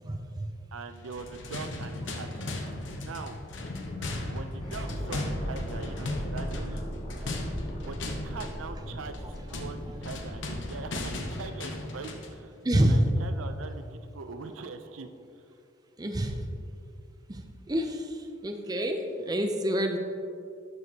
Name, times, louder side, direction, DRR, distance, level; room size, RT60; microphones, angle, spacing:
voice 1, 0.0-0.5 4.0-4.2 7.2-7.3 12.6-13.1 16.0-16.4 17.3-20.0, right 1 dB, 20° right, 4 dB, 0.5 m, -28 dB
voice 2, 0.7-2.5 3.0-3.4 4.2-6.8 7.8-12.5 12.9-15.1, right 4 dB, 90° right, 8 dB, 0.5 m, -42 dB
sound 1, 1.0-12.4, left 2 dB, 65° left, 0.8 m, -37 dB
sound 2, 4.6-11.4, equal, 35° left, 2.0 m, -38 dB
11.5 x 6.2 x 2.8 m, 2.4 s
head